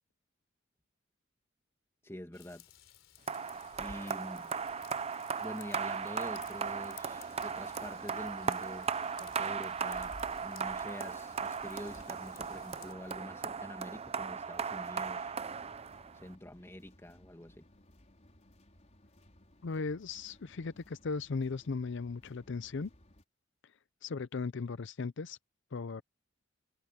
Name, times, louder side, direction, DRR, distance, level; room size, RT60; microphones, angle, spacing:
voice 1, 2.0-2.6 3.8-4.5 5.4-8.9 9.2-15.3 16.1-17.7, equal, 15° left, 2.2 m, -46 dB
Raindrop / Vehicle horn car horn honking / Trickle dribble, 2.3-12.9, left 6 dB, 80° left, 3.6 m, -56 dB
sound 1, 3.3-16.3, right 6 dB, 30° right, 0.6 m, -37 dB
sound 2, 6.2-23.2, left 1 dB, 35° left, 4.6 m, -62 dB
voice 2, 19.6-22.9 24.0-25.4 25.7-26.0, left 4 dB, 65° left, 0.5 m, -37 dB
head